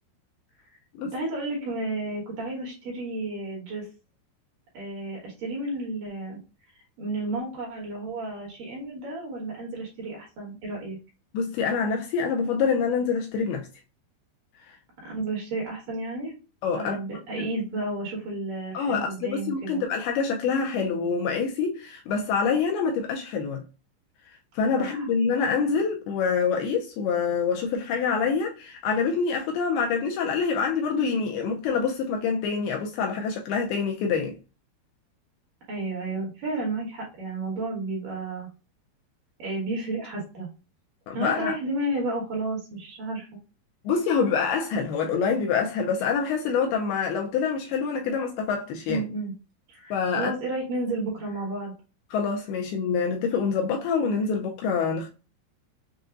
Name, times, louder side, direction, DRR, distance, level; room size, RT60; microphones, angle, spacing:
voice 1, 1.1-3.9 4.7-6.4 7.0-11.0 15.0-16.3 16.7-19.8 24.7-25.1 35.7-38.5 39.4-40.5 41.1-43.3 48.9-49.3 49.7-51.7 53.7-53.8, right 2 dB, 60° right, 2.9 m, -32 dB
voice 2, 11.3-13.7 16.6-17.0 17.4-17.5 18.7-23.6 24.6-34.4 41.1-41.6 43.8-49.0 49.9-50.3 52.1-55.1, left 5 dB, 80° left, 2.4 m, -26 dB
6.8 x 2.6 x 2.4 m
omnidirectional pair, 4.9 m